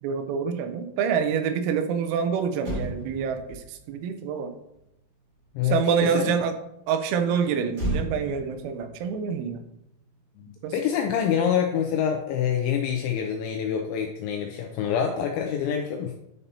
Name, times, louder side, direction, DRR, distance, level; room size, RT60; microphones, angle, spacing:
voice 1, 0.0-4.5 5.6-6.6 6.9-9.6 10.6-10.7, right 7 dB, 90° right, 8 dB, 3.5 m, -26 dB
Motor vehicle (road), 2.5-6.1 7.7-10.3 10.6-10.8, right 1 dB, 45° right, 3.3 m, -36 dB
voice 2, 5.6-6.3 10.4-16.1, left 8 dB, 85° left, 3 dB, 2.7 m, -26 dB
9.9 x 5.4 x 2.8 m, 0.82 s
omnidirectional pair, 6.0 m